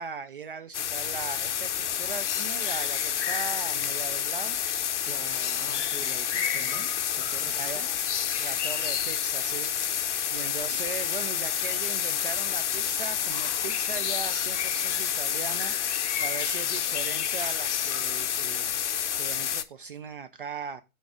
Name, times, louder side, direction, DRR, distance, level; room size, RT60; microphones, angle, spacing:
voice 1, 0.0-4.6 7.5-7.8 8.4-9.7 10.3-15.8 16.2-18.7 19.2-20.8, right 6 dB, 40° right, 0.4 m, -39 dB
sound 1, 0.7-19.6, left 9 dB, 50° left, 0.7 m, -29 dB
voice 2, 5.1-6.9 7.3-7.9, right 3 dB, 85° right, 1.6 m, -44 dB
6.9 x 4.5 x 5.0 m
figure-of-eight pair, 120°, 44 cm